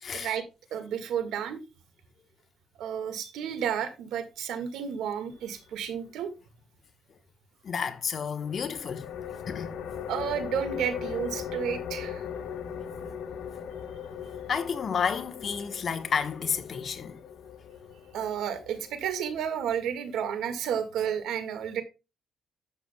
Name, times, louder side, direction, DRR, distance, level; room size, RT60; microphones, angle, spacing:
voice 1, 0.1-0.4 0.7-1.6 2.8-6.3 10.1-12.2 18.1-21.8, right 8 dB, 85° right, 1.7 m, -31 dB
voice 2, 7.6-9.0 9.5-9.7 14.5-17.2, left 6 dB, 50° left, 1.1 m, -31 dB
sound 1, 8.4-19.8, left 8 dB, 80° left, 1.4 m, -39 dB
11.5 x 7.6 x 2.2 m
cardioid pair, 90°, 0 cm